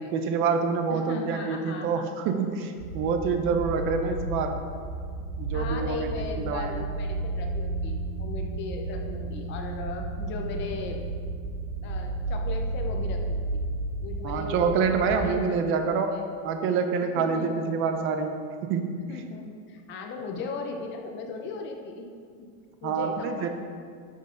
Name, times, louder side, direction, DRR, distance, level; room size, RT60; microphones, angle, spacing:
voice 1, 0.1-4.6 5.4-6.9 14.2-16.1 16.4-18.4 18.6-19.0 22.8-23.5, right 5 dB, 30° right, 6 dB, 0.7 m, -27 dB
voice 2, 0.9-2.3 5.5-11.1 11.8-13.5 14.0-14.8 15.1-15.8 16.1-16.2 17.2-17.5 19.1-22.1 22.8-23.5, left 4 dB, 30° left, 3 dB, 0.8 m, -37 dB
sound 1, 2.8-15.2, right 2 dB, 75° right, 2.1 m, -32 dB
11.0 x 6.6 x 3.8 m, 2.1 s
supercardioid pair, 160°, 41 cm